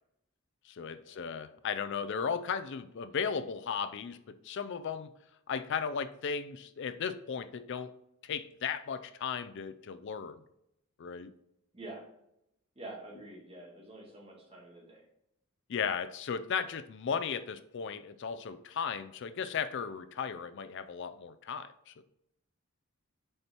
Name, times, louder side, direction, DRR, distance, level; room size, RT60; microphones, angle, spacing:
voice 1, 0.7-5.1 5.5-7.9 8.2-10.4 11.0-11.3 15.7-22.0, left 6 dB, 55° left, 12 dB, 0.4 m, -36 dB
voice 2, 11.7-12.0 12.8-15.1, right 2 dB, 25° right, -2 dB, 1.8 m, -47 dB
6.5 x 4.4 x 4.3 m, 0.80 s
head